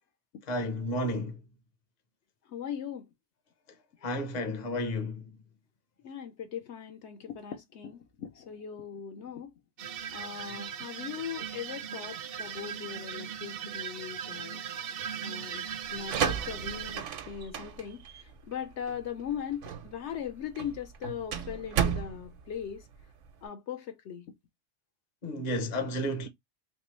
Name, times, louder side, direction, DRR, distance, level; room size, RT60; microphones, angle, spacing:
voice 1, 0.5-1.4 4.0-5.3 25.2-26.3, left 1 dB, 40° left, 0.8 m, -32 dB
voice 2, 2.5-3.1 6.0-9.5 10.1-14.6 15.2-22.8 23.4-24.3, left 8 dB, 70° left, 1.0 m, -39 dB
sound 1, 9.8-17.0, right 8 dB, 65° right, 0.7 m, -38 dB
sound 2, 15.8-23.4, right 8 dB, 85° right, 1.0 m, -34 dB
3.4 x 2.9 x 3.0 m
omnidirectional pair, 1.2 m